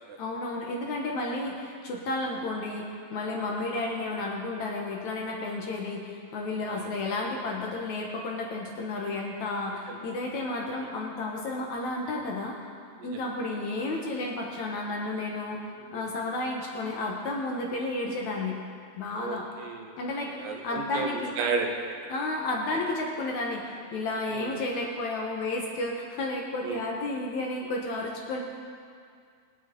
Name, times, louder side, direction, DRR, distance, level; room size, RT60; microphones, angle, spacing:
voice 1, 0.2-12.6 13.0-15.6 15.9-18.5 19.0-19.5 20.0-21.4 22.1-28.4, left 2 dB, 65° left, -1 dB, 2.2 m, -32 dB
voice 2, 19.2-20.0 20.4-22.0 24.3-24.5 26.6-26.8, right 4 dB, 75° right, 3 dB, 2.5 m, -33 dB
23.0 x 9.2 x 3.8 m, 2.2 s
omnidirectional pair, 4.3 m